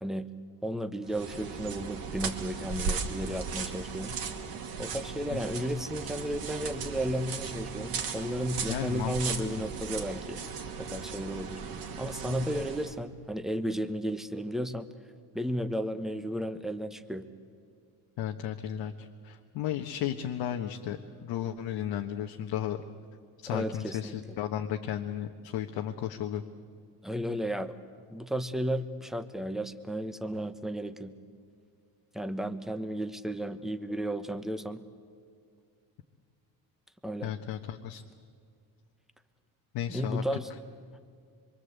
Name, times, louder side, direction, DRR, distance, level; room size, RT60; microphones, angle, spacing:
voice 1, 0.6-4.2 4.8-10.4 10.8-11.6 12.0-14.9 15.3-17.3 23.5-24.4 27.0-27.7 28.1-31.1 32.1-34.8 37.0-37.3 39.9-40.5, equal, ahead, 10 dB, 1.1 m, -33 dB
sound 1, 1.0-13.0, right 5 dB, 60° right, 2.5 m, -37 dB
voice 2, 8.7-9.6 18.2-22.8 23.4-26.4 37.2-38.0 39.7-40.2, left 10 dB, 75° left, 3 dB, 1.3 m, -34 dB
26.0 x 23.5 x 8.2 m, 2.3 s
cardioid pair, 120°, 41 cm